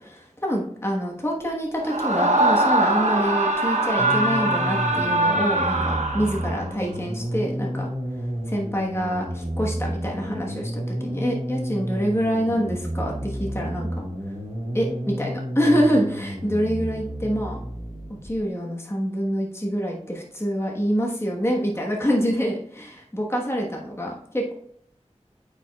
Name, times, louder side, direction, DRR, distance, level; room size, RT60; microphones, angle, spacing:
voice 1, 0.4-7.9 8.5-14.1 14.7-14.9 15.2-17.6 18.2-24.5, equal, 20° left, -1 dB, 1.2 m, -26 dB
Screaming, 1.8-6.7, right 2 dB, 75° right, 1.1 m, -22 dB
sound 1, 4.0-18.5, equal, 55° right, 2.2 m, -31 dB
8.9 x 5.0 x 2.3 m, 0.66 s
wide cardioid pair, 50°, 12 cm